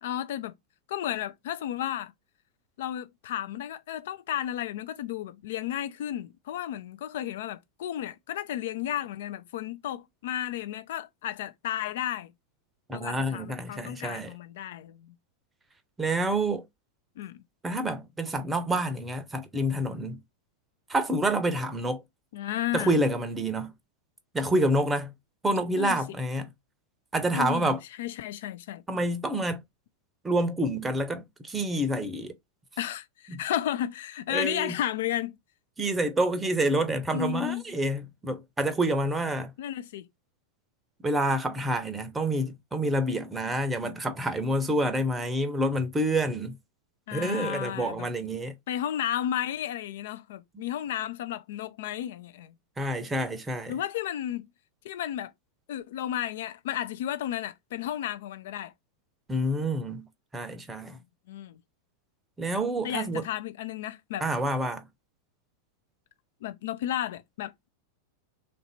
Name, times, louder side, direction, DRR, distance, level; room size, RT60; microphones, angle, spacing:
voice 1, 0.0-0.5 0.9-2.1 2.8-12.3 12.9-15.1 17.2-17.4 22.3-23.0 25.8-26.0 27.3-28.8 32.8-35.4 37.1-37.8 39.6-40.1 43.8-44.0 47.1-48.1 48.7-52.5 53.7-54.5 54.8-55.3 55.7-58.7 60.9-61.0 61.3-61.6 62.8-64.3 66.4-67.7, left 11 dB, 55° left, 0.5 m, -33 dB
voice 2, 12.9-14.3 16.0-16.6 17.6-20.2 20.9-22.0 22.7-23.7 24.3-25.1 25.4-26.5 27.1-27.8 28.9-29.6 30.2-32.3 33.3-33.4 34.3-34.8 35.8-39.5 41.0-46.6 47.1-48.6 52.8-53.7 59.3-61.0 62.4-63.3 64.2-64.9, right 1 dB, 10° right, 0.7 m, -28 dB
3.3 x 2.6 x 4.2 m
figure-of-eight pair, 90°, 0 cm